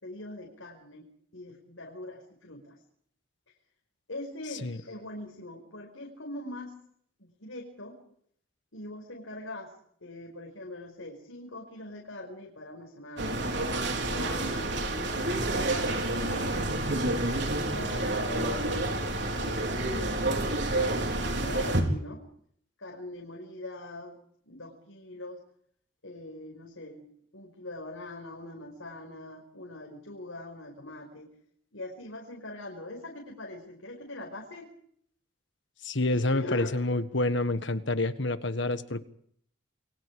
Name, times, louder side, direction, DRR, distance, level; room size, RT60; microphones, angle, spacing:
voice 1, 0.0-1.1 1.3-2.8 4.1-6.8 7.2-8.0 8.7-9.7 10.0-13.7 14.1-14.8 15.3-16.7 17.2-18.7 19.3-22.2 22.8-24.2 24.4-25.4 26.0-27.0 27.3-31.3 31.7-34.7 36.1-36.8, left 1 dB, 80° left, 1 dB, 5.2 m, -42 dB
sound 1, 13.2-21.8, right 2 dB, 60° right, 4.3 m, -29 dB
voice 2, 35.8-39.1, left 2 dB, 65° left, 11 dB, 1.6 m, -28 dB
28.5 x 23.0 x 5.0 m, 0.65 s
head